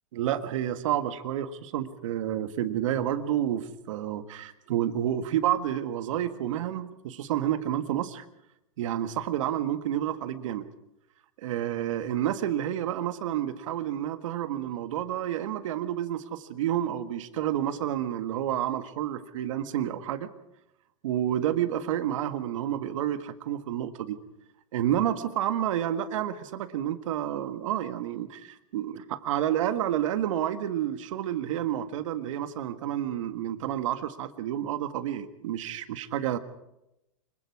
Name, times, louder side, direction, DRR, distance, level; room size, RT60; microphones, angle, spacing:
voice 1, 0.1-8.3 8.8-10.7 11.4-20.3 21.0-24.2 24.7-36.4, right 11 dB, 65° right, 10 dB, 1.7 m, -29 dB
25.0 x 22.5 x 4.9 m, 0.87 s
hypercardioid pair, 130°, 18 cm